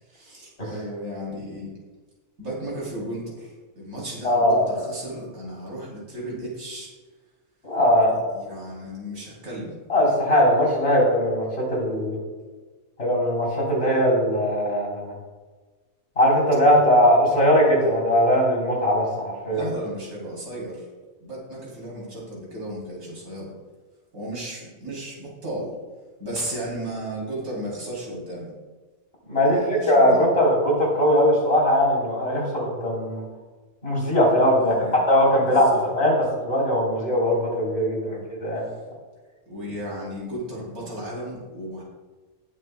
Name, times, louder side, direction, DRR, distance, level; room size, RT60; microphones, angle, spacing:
voice 1, 0.1-1.7 2.4-6.9 8.3-9.8 19.5-20.9 21.2-23.6 24.1-25.8 26.2-28.5 29.4-30.3 34.6-35.0 35.4-35.8 38.1-38.3 39.5-41.8, right 1 dB, 75° right, -5 dB, 3.7 m, -34 dB
voice 2, 4.2-4.6 7.6-8.2 9.9-12.2 13.0-15.1 16.2-19.6 29.3-29.6 29.9-33.2 33.8-34.7 35.1-36.2 36.4-38.7, equal, 40° left, -4 dB, 4.0 m, -20 dB
19.0 x 7.7 x 2.2 m, 1.3 s
omnidirectional pair, 1.5 m